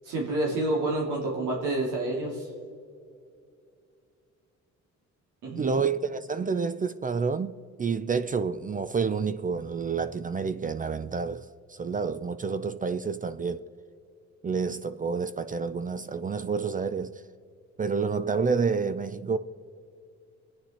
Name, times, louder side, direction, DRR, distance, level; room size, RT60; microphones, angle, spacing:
voice 1, 0.0-2.5 5.4-5.8, right 2 dB, 90° right, 2.9 m, -28 dB
voice 2, 5.6-13.7 14.4-17.2 17.8-19.4, right 5 dB, 25° right, 0.5 m, -29 dB
23.5 x 9.7 x 4.3 m
cardioid pair, 90°, 30 cm